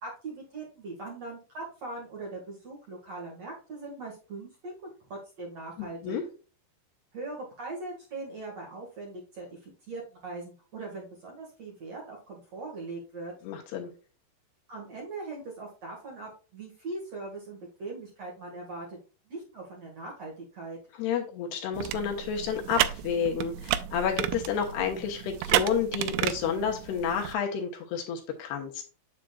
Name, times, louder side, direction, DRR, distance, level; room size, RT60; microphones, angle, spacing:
voice 1, 0.0-6.2 7.1-13.3 14.7-19.0 19.3-20.8, right 3 dB, 50° right, -1 dB, 2.2 m, -40 dB
voice 2, 5.8-6.2 13.4-13.9 21.0-28.8, left 7 dB, 70° left, 2 dB, 2.9 m, -30 dB
sound 1, 21.7-27.3, right 13 dB, 90° right, 3.0 m, -31 dB
7.6 x 7.4 x 2.3 m, 0.35 s
omnidirectional pair, 5.3 m